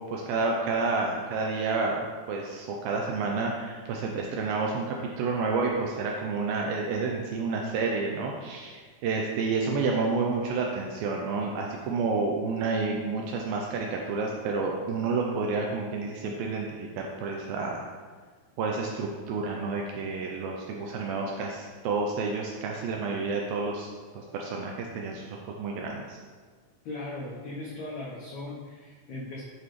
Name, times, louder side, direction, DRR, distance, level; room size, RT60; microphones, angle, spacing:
voice 1, 0.1-2.0 2.3-17.8 18.6-23.9 24.1-26.2, right 4 dB, 80° right, 0 dB, 2.1 m, -30 dB
voice 2, 26.8-29.4, left 2 dB, 85° left, -5 dB, 1.6 m, -38 dB
8.4 x 5.3 x 3.1 m, 1.5 s
omnidirectional pair, 4.7 m